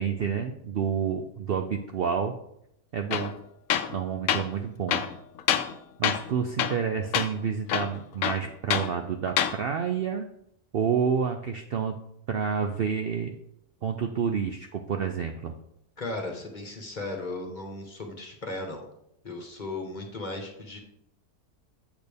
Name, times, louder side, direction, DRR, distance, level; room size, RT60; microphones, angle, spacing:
voice 1, 0.0-2.3 2.9-3.3 3.9-5.0 6.0-10.3 10.7-12.0 12.3-13.3 13.8-15.5, right 7 dB, 80° right, 5 dB, 0.5 m, -29 dB
Tools, 3.1-3.3 3.7-4.0 4.3-4.5 4.9-5.8 6.0-6.3 6.6-6.9 7.1-7.3 7.7-8.9 9.3-9.6, left 10 dB, 70° left, 0.9 m, -26 dB
voice 2, 16.0-18.9 19.2-20.8, left 2 dB, 35° left, 2 dB, 1.2 m, -36 dB
8.2 x 6.5 x 3.4 m, 0.76 s
omnidirectional pair, 1.6 m